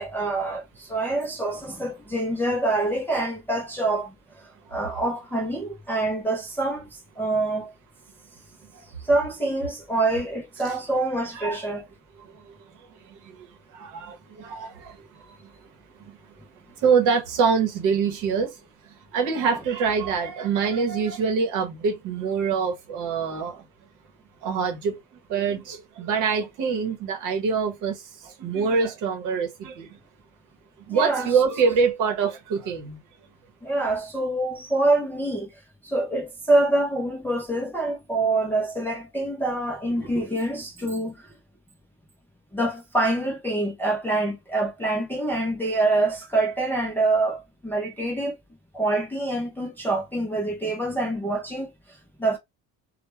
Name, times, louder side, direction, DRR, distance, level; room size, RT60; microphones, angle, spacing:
voice 1, 0.0-4.1 4.7-7.7 9.0-11.9 30.9-31.3 33.6-35.5 35.8-41.3 42.5-48.4 48.7-52.4, right 2 dB, 5° left, 0.3 m, -26 dB
voice 2, 11.3-11.6 12.3-15.5 16.0-16.2 16.8-23.6 24.4-24.9 25.3-30.0 30.9-33.0, right 5 dB, 60° right, 0.8 m, -25 dB
2.2 x 2.1 x 2.9 m
cardioid pair, 160°, 35 cm